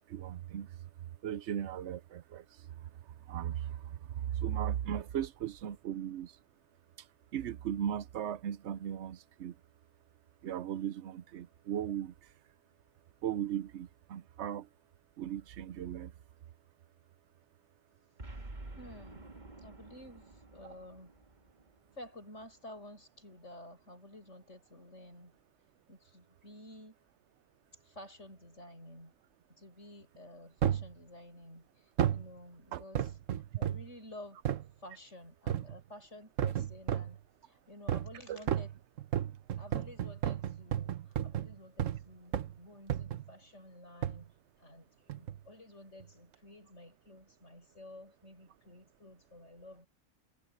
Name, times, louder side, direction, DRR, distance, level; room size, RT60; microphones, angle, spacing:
voice 1, 0.1-2.7 3.3-6.4 7.3-9.6 10.4-12.1 13.2-14.7 15.2-16.1 32.7-32.8 38.3-38.4, right 10 dB, 65° right, 0.9 m, -37 dB
Boom, 18.2-22.6, right 2 dB, 35° right, 2.2 m, -50 dB
voice 2, 18.8-19.3 19.6-21.1 22.0-25.3 25.9-27.0 27.7-29.1 29.5-33.2 33.5-34.4 34.8-38.7 39.6-44.3 44.6-49.9, left 1 dB, 70° left, 8.4 m, -52 dB
sound 1, 30.6-30.9 32.0-32.3 32.9-33.9 34.4-34.7 35.5-35.8 36.4-37.2 37.9-38.2 38.5-42.0 42.3-42.6 42.9-43.3 44.0-44.2 45.1-45.4 46.0-46.1, right 10 dB, 85° right, 1.3 m, -33 dB
omnidirectional pair, 1.3 m